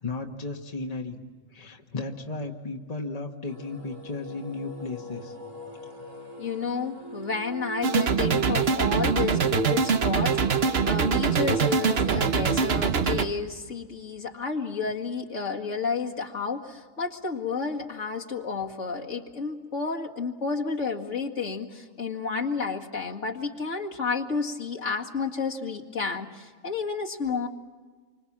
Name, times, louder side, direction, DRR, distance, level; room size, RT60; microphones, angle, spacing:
voice 1, 0.0-1.2 1.5-5.3, left 3 dB, 30° left, 2 dB, 1.6 m, -35 dB
sound 1, 3.4-12.2, equal, 80° right, 5.4 m, -41 dB
voice 2, 6.4-27.5, left 5 dB, 65° left, 0 dB, 2.4 m, -31 dB
sound 2, 7.8-13.3, right 6 dB, 50° right, 1.2 m, -23 dB
29.0 x 25.5 x 7.4 m, 1.5 s
omnidirectional pair, 1.4 m